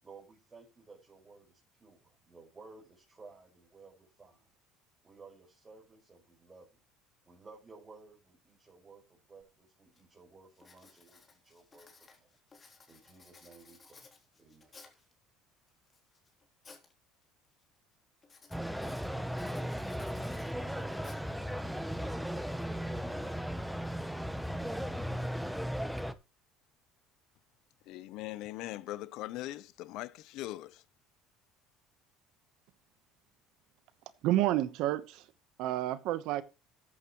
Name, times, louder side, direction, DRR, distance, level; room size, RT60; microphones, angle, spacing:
voice 1, 0.0-4.5 5.0-6.7 7.2-12.4 12.9-14.1 14.4-15.0, right 4 dB, 20° right, 5.0 m, -56 dB
Writing, 9.4-9.5 10.0-10.2 10.5-15.1 15.7-16.9 17.2-17.6 18.2-21.6, left 4 dB, 25° left, 3.2 m, -58 dB
sound 1, 18.5-26.1, equal, ahead, 0.8 m, -36 dB
voice 2, 27.9-30.8, left 16 dB, 65° left, 0.7 m, -41 dB
voice 3, 34.2-35.2 35.6-36.4, right 14 dB, 70° right, 1.0 m, -29 dB
13.5 x 8.6 x 3.1 m
cardioid pair, 120°, 0 cm